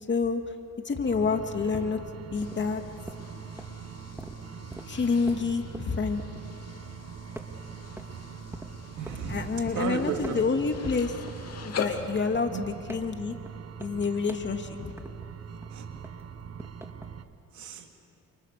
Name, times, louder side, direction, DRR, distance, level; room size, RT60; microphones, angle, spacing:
voice 1, 0.1-0.4 0.8-2.8 4.9-6.2 9.3-11.1 11.6-13.3 13.8-14.9, left 4 dB, 40° left, 5 dB, 2.4 m, -28 dB
sound 1, 0.7-7.0 7.4-8.2 8.5-9.2 9.7-9.9 10.2-10.9 11.3-15.4 15.6-17.1, right 1 dB, 10° right, 2.2 m, -45 dB
sound 2, 1.1-17.2, right 7 dB, 55° right, 1.4 m, -43 dB
sound 3, 2.3-12.1, left 7 dB, 55° left, 2.8 m, -43 dB
voice 2, 8.9-10.5 12.4-12.7 15.7-15.9 17.5-17.9, right 5 dB, 70° right, 3 dB, 3.2 m, -34 dB
29.5 x 28.5 x 6.8 m, 2.6 s
cardioid pair, 90°, 30 cm